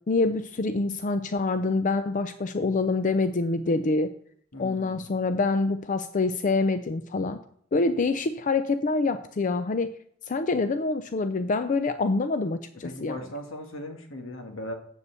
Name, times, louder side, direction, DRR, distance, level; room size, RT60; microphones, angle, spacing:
voice 1, 0.1-4.1 4.6-7.4 7.7-10.0 10.2-13.2, left 3 dB, 40° left, 10 dB, 0.5 m, -26 dB
voice 2, 4.5-5.1 12.7-14.7, left 1 dB, 75° left, 4 dB, 1.7 m, -38 dB
8.4 x 7.0 x 6.8 m, 0.63 s
head